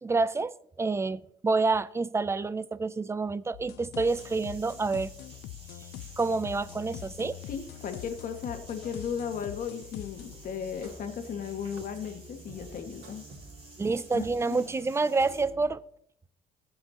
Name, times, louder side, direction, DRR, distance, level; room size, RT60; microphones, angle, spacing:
voice 1, 0.0-5.1 6.2-7.4 13.8-15.8, right 3 dB, 15° right, 0.4 m, -28 dB
sound 1, 3.5-10.4, left 14 dB, 85° left, 0.6 m, -44 dB
sound 2, 4.0-15.4, right 2 dB, 35° right, 4.3 m, -53 dB
voice 2, 7.5-13.2 14.1-14.7, left 7 dB, 55° left, 1.8 m, -36 dB
sound 3, 10.1-15.7, right 2 dB, 80° right, 3.9 m, -50 dB
21.5 x 7.6 x 2.9 m
cardioid pair, 110°, 17 cm